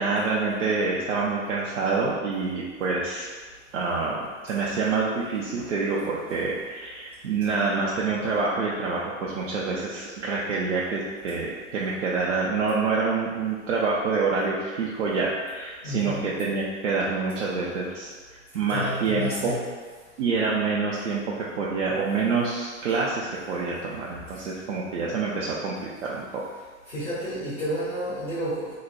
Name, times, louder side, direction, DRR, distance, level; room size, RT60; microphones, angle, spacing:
voice 1, 0.0-3.3 3.7-18.1 18.5-19.5 20.2-21.2 21.6-26.4, right 4 dB, 65° right, -5 dB, 0.5 m, -27 dB
voice 2, 5.9-6.3 6.6-6.7 15.8-16.3 18.7-19.6 24.3-24.4 26.9-28.7, equal, 75° left, -13 dB, 1.3 m, -31 dB
3.9 x 2.1 x 2.3 m, 1.4 s
figure-of-eight pair, 95°, 40 cm